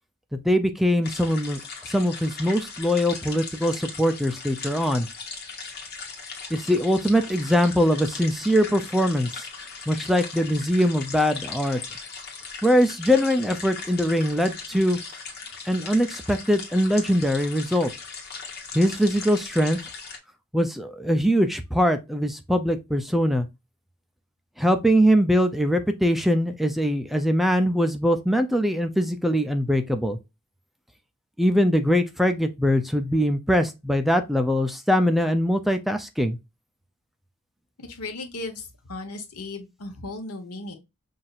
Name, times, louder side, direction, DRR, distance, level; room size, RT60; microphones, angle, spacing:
voice 1, 0.3-1.6 1.9-5.1 6.5-9.5 9.9-11.8 12.6-15.0 15.7-17.9 18.7-19.8 20.5-23.5 24.6-30.2 31.4-36.4, equal, ahead, 0.3 m, -22 dB
sound 1, 1.0-20.2, left 4 dB, 50° left, 1.2 m, -38 dB
voice 2, 37.8-40.7, left 2 dB, 85° left, 1.0 m, -36 dB
5.6 x 2.6 x 2.4 m
head